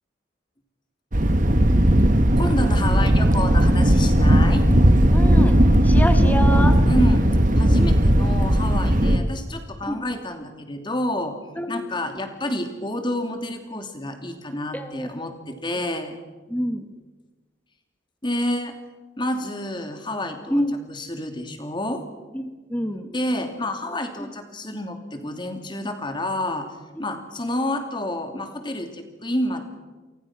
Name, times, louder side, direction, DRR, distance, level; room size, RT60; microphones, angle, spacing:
Thunder, 1.1-9.2, right 1 dB, 40° right, 1.5 m, -17 dB
voice 1, 2.4-4.6 6.9-7.3 7.5-11.4 11.7-16.2 18.2-18.7 19.2-20.6 20.9-22.0 23.1-26.7 27.0-29.6, left 1 dB, 25° left, 6 dB, 2.8 m, -29 dB
voice 2, 5.1-6.8 9.0-9.3 9.8-10.0 11.6-11.7 14.7-15.1 16.5-16.9 20.5-20.7 22.3-23.1 24.2-24.3 27.0-27.1, equal, 10° left, 7 dB, 1.5 m, -27 dB
29.5 x 24.0 x 6.1 m, 1.3 s
head